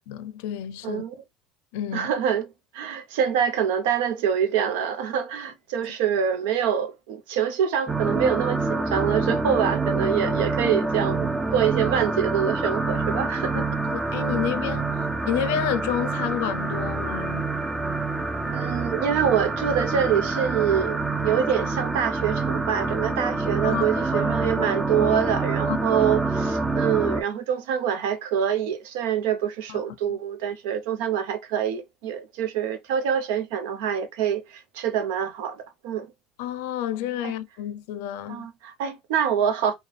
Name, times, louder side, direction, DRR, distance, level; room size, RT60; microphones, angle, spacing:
voice 1, 0.1-1.1 1.7-2.1 10.6-10.7 13.5-13.6 14.1-14.9 15.3-17.5 23.6-23.9 24.1-24.3 25.7-25.8 29.7-29.8 30.1-30.2 36.4-38.5, left 10 dB, 80° left, 0.5 m, -30 dB
voice 2, 0.8-1.1 1.9-2.4 2.7-13.7 18.5-36.1 37.2-37.3 38.3-39.7, right 8 dB, 80° right, 0.7 m, -25 dB
sound 1, 7.9-27.2, right 3 dB, 15° right, 0.5 m, -26 dB
4.2 x 2.2 x 3.3 m
supercardioid pair, 110°, 0 cm